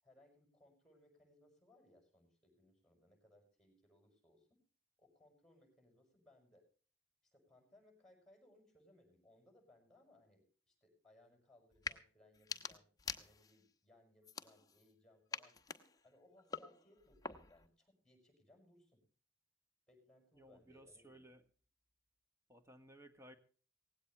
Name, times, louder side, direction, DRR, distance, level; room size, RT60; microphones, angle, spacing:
voice 1, 0.0-4.6 5.0-6.6 7.2-15.6 16.0-19.0 19.9-21.3, left 1 dB, 5° left, 4 dB, 6.5 m, -68 dB
sound 1, 11.7-12.0 12.3-13.7 14.2-14.9 15.3-17.7, left 5 dB, 20° left, 1.1 m, -47 dB
voice 2, 20.3-21.4 22.5-23.4, right 1 dB, 15° right, 7 dB, 1.9 m, -59 dB
18.0 x 16.5 x 3.2 m, 0.40 s
head